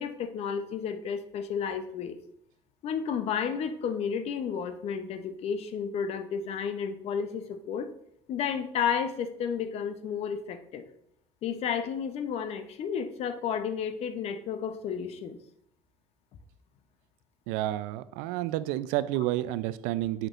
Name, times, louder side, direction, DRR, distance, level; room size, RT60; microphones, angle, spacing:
voice 1, 0.0-2.2 2.8-7.9 8.3-10.8 11.4-15.4, left 7 dB, 55° left, 9 dB, 0.7 m, -32 dB
voice 2, 17.5-20.3, right 14 dB, 85° right, 15 dB, 0.4 m, -30 dB
7.8 x 5.9 x 2.5 m, 0.74 s
cardioid pair, 110°, 13 cm